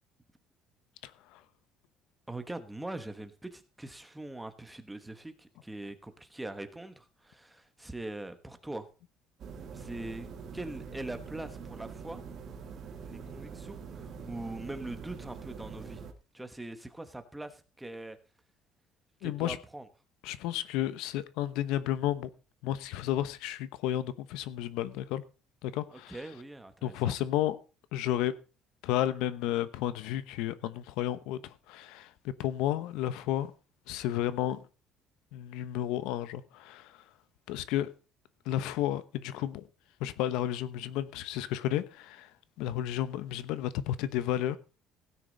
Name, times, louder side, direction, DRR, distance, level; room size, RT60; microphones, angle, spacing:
voice 1, 1.0-1.4 19.2-19.6 20.2-22.3 22.6-25.2 25.6-26.2 26.8-27.6 27.9-28.3 28.8-33.5 33.9-34.6 35.3-37.0 37.5-37.9 38.4-39.6 40.0-42.3 42.6-44.6, left 12 dB, 90° left, 1.0 m, -32 dB
voice 2, 2.3-8.9 9.7-10.3 10.5-12.2 13.0-16.0 16.3-18.2 19.2-19.9 25.9-27.1, right 2 dB, 5° right, 1.2 m, -42 dB
sound 1, 9.4-16.1, right 6 dB, 40° right, 1.8 m, -44 dB
16.5 x 9.9 x 4.0 m
cardioid pair, 170°, 0 cm